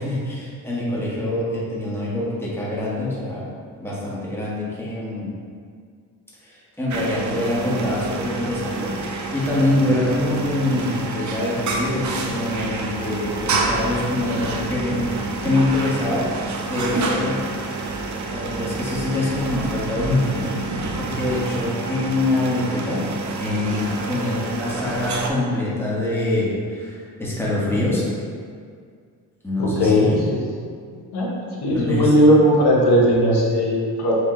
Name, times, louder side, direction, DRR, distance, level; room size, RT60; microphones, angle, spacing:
voice 1, 0.0-3.4 3.8-5.3 6.4-16.3 16.6-17.4 18.3-23.0 23.4-28.1 29.4-30.2 31.7-32.1, left 1 dB, 5° left, -7 dB, 1.4 m, -25 dB
sound 1, 6.9-25.3, right 3 dB, 50° right, 0.6 m, -28 dB
voice 2, 29.6-30.4 30.9-31.3 31.6-34.1, equal, 75° left, -3 dB, 1.1 m, -17 dB
4.7 x 2.8 x 3.7 m, 2.1 s
cardioid pair, 75°, 39 cm